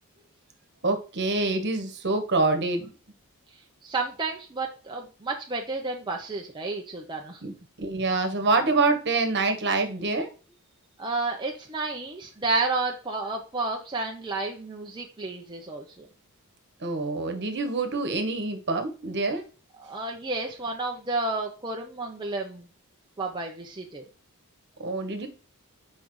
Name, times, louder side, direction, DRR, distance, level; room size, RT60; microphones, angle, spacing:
voice 1, 0.8-2.9 7.4-7.5 7.8-10.3 16.8-19.4 24.8-25.3, right 3 dB, 50° right, 7 dB, 1.3 m, -26 dB
voice 2, 3.8-7.5 11.0-16.1 19.8-22.7 23.2-24.0, right 3 dB, 20° right, 0 dB, 0.8 m, -31 dB
8.4 x 5.2 x 3.2 m, 0.35 s
head